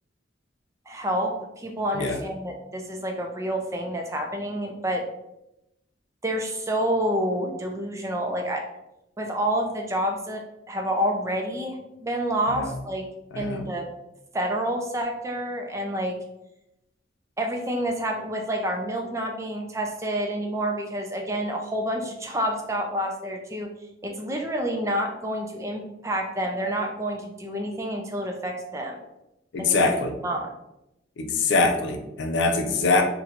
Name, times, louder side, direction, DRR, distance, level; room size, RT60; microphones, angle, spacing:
voice 1, 0.9-5.0 6.2-8.6 9.2-10.4 10.7-13.1 13.4-13.9 14.3-16.2 17.4-23.7 24.0-29.0 29.6-29.7 30.2-30.5, equal, 15° right, 2 dB, 0.4 m, -28 dB
voice 2, 13.3-13.7 29.5-30.1 31.2-33.0, left 3 dB, 70° left, 4 dB, 0.4 m, -23 dB
2.8 x 2.2 x 3.7 m, 0.89 s
head